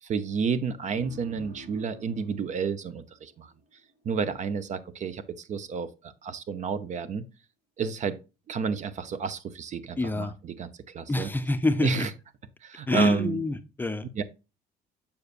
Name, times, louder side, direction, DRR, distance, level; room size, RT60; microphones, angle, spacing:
voice 1, 0.0-3.5 4.0-5.2 5.5-7.3 7.8-8.2 8.5-11.3 11.8-12.1 12.6-13.4 14.1-14.2, right 6 dB, 45° right, 0.6 m, -31 dB
sound 1, 0.9-4.1, right 2 dB, 80° right, 3.5 m, -49 dB
voice 2, 10.0-10.3 11.1-12.1 12.9-14.1, left 2 dB, 10° left, 0.6 m, -26 dB
7.0 x 6.6 x 2.4 m
cardioid pair, 110°, 17 cm